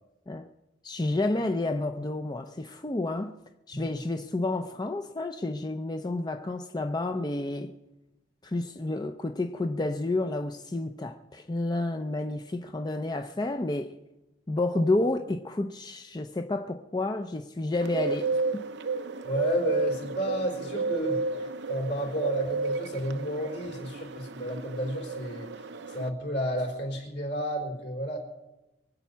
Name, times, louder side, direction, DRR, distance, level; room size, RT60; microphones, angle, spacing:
voice 1, 0.8-3.3 3.7-7.7 8.4-14.0 14.5-18.7, left 2 dB, 25° left, 0.5 m, -30 dB
Bird, 17.8-26.1, right 3 dB, 75° right, 0.7 m, -32 dB
voice 2, 19.2-25.5 25.9-28.2, equal, 70° left, 4.1 m, -32 dB
23.5 x 8.3 x 5.7 m
head